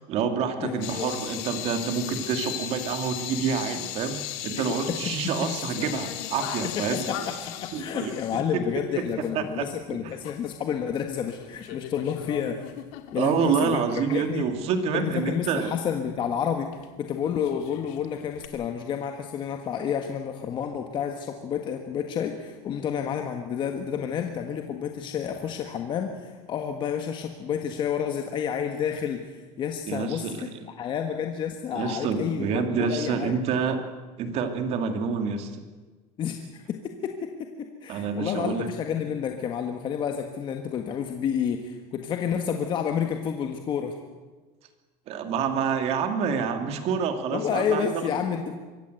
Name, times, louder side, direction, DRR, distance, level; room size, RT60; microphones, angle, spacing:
voice 1, 0.1-4.2 4.4-7.2 7.7-8.1 9.3-9.7 10.0-10.2 13.1-15.7 29.9-30.6 31.7-33.8 34.2-35.6 37.9-38.7 45.1-47.9, right 6 dB, 50° right, 7 dB, 2.5 m, -27 dB
voice 2, 0.6-1.1 4.5-5.0 5.2-5.5 6.6-12.7 13.1-13.8 14.1-14.5 14.9-16.7 17.0-30.5 30.8-33.4 36.2-43.9 47.3-48.6, left 8 dB, 35° left, 4 dB, 1.6 m, -30 dB
sound 1, 0.8-9.4 9.7-9.8 10.2-11.0 11.3-13.7 14.1-14.2 16.7-16.8 17.2-18.5, left 12 dB, 70° left, 2.1 m, -37 dB
23.5 x 16.0 x 8.0 m, 1.3 s
cardioid pair, 155°, 14 cm